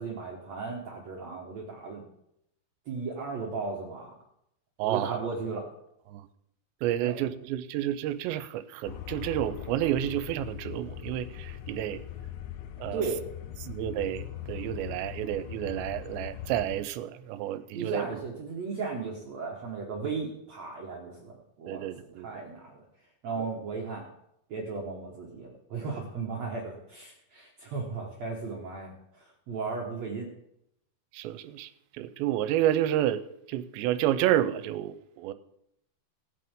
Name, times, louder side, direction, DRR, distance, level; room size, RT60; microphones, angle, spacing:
voice 1, 0.0-2.0 2.8-4.1 4.8-5.7 7.0-7.2 12.9-13.2 17.7-22.8 23.2-24.1 24.5-30.3, right 4 dB, 70° right, -2 dB, 1.6 m, -36 dB
voice 2, 4.8-5.2 6.1-6.3 6.8-12.0 12.8-13.0 13.6-18.0 21.7-22.3 31.1-33.2 33.5-35.3, right 12 dB, 85° right, 12 dB, 2.8 m, -30 dB
sound 1, 8.8-16.8, left 11 dB, 85° left, 2.9 m, -41 dB
18.0 x 8.5 x 3.7 m, 0.78 s
omnidirectional pair, 5.1 m